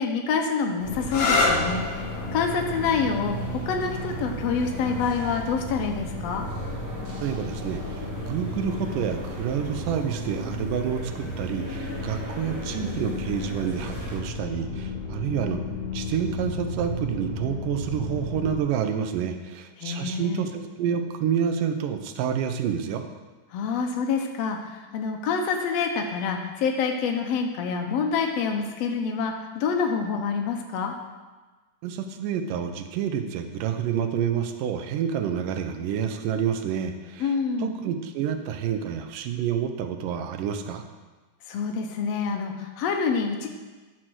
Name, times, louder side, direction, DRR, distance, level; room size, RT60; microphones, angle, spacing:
voice 1, 0.0-3.3 3.7-6.5 19.8-20.4 23.5-30.9 37.2-37.7 41.5-43.5, left 5 dB, 85° left, 2 dB, 1.4 m, -27 dB
sound 1, 0.8-18.6, left 1 dB, 40° left, 1.7 m, -34 dB
sound 2, 0.8-14.2, right 1 dB, 35° right, 1.5 m, -40 dB
sound 3, 1.0-8.5 9.5-10.0 13.5-13.9, left 3 dB, 65° left, 3.0 m, -31 dB
voice 2, 7.2-15.6 15.9-23.0 31.8-37.3 37.6-40.8, right 8 dB, 75° right, 7 dB, 2.3 m, -28 dB
12.5 x 6.3 x 6.3 m, 1.3 s
omnidirectional pair, 4.2 m